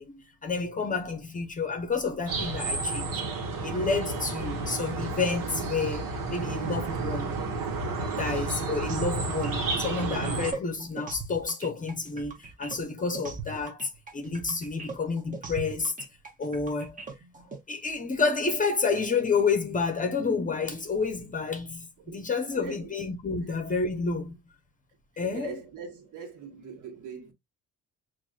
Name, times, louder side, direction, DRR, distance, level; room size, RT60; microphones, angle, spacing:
voice 1, 0.0-3.2 3.6-7.3 8.2-15.9 16.4-17.0 17.7-24.4 25.2-25.5, left 4 dB, 25° left, 0.7 m, -30 dB
sound 1, 2.3-10.5, right 3 dB, 80° right, 1.3 m, -31 dB
sound 2, 8.9-17.6, right 4 dB, 25° right, 0.8 m, -40 dB
voice 2, 22.5-22.9 25.2-27.3, right 6 dB, 60° right, 1.5 m, -42 dB
5.9 x 2.6 x 2.3 m
cardioid pair, 145°, 33 cm